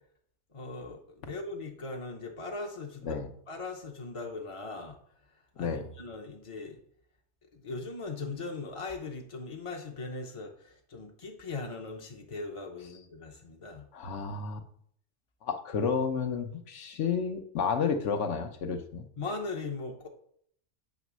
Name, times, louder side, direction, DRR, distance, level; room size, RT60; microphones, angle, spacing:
voice 1, 0.5-5.0 5.6-6.8 7.5-13.9 19.2-20.1, left 3 dB, 35° left, 1 dB, 0.6 m, -39 dB
voice 2, 13.9-14.6 15.4-19.1, left 6 dB, 75° left, 6 dB, 1.1 m, -31 dB
8.2 x 3.1 x 6.0 m, 0.64 s
omnidirectional pair, 1.3 m